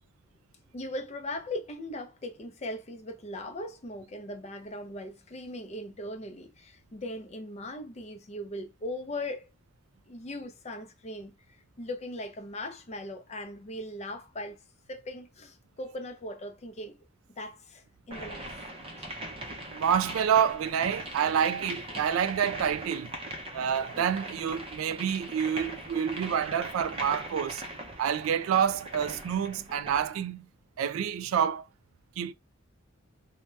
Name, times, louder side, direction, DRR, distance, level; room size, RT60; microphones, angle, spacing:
voice 1, 0.7-9.5 10.1-14.6 14.9-17.0 17.4-18.6 19.0-19.1, left 1 dB, 30° left, 0.5 m, -39 dB
sound 1, 18.1-30.2, right 1 dB, 25° right, 0.5 m, -40 dB
voice 2, 19.7-23.1 23.5-27.6 28.0-30.5 30.8-31.6 32.2-32.3, right 8 dB, 75° right, 0.3 m, -28 dB
2.7 x 2.1 x 3.2 m
head